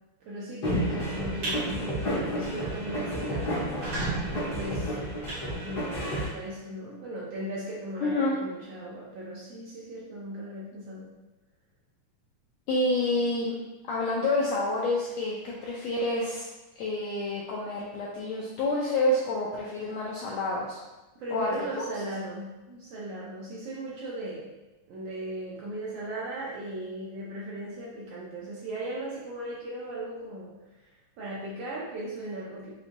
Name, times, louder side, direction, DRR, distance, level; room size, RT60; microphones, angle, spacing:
voice 1, 0.2-3.5 4.5-4.9 5.6-11.1 21.2-24.5 24.9-30.5 31.2-32.7, right 1 dB, 80° right, -5 dB, 1.4 m, -37 dB
sound 1, 0.6-6.3, equal, 55° left, 1.1 m, -31 dB
sound 2, 1.2-1.6 2.0-2.3 2.6-2.7 3.0-3.1 3.6-6.1, right 2 dB, 55° right, 1.8 m, -35 dB
voice 2, 8.0-8.3 12.7-13.5 13.9-16.4 16.8-20.8 21.3-21.5 21.8-21.9, left 2 dB, 85° left, -4 dB, 1.5 m, -28 dB
6.4 x 2.6 x 2.6 m, 1.1 s
omnidirectional pair, 3.6 m